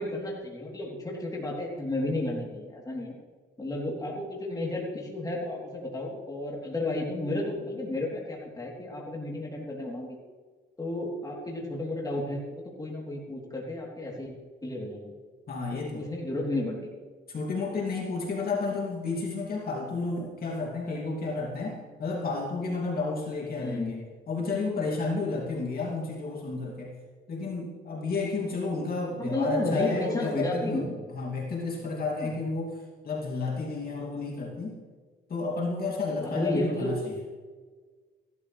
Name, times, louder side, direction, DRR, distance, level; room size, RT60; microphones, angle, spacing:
voice 1, 0.0-3.1 3.6-10.2 10.8-14.3 14.6-15.1 15.7-16.9 23.6-23.9 29.2-30.9 32.2-32.3 36.2-37.1, left 1 dB, 20° left, -3 dB, 3.2 m, -32 dB
voice 2, 15.5-16.1 17.3-26.9 27.3-34.8 35.3-37.1, left 3 dB, 50° left, -2 dB, 2.7 m, -31 dB
15.0 x 12.5 x 3.3 m, 1.4 s
cardioid pair, 90°, 20 cm